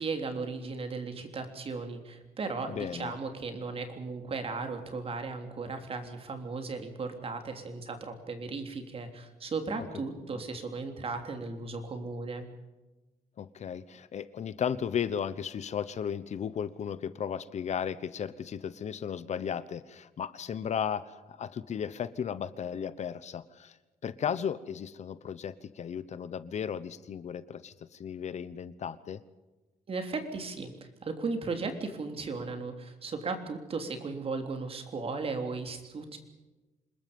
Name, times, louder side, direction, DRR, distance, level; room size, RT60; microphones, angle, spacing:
voice 1, 0.0-12.5 29.9-36.2, right 4 dB, 40° right, 6 dB, 3.4 m, -36 dB
voice 2, 2.7-3.1 9.8-9.9 13.4-23.8 24.0-29.2, left 8 dB, 55° left, 15 dB, 1.0 m, -35 dB
27.0 x 21.0 x 5.4 m, 1.1 s
cardioid pair, 125°, 14 cm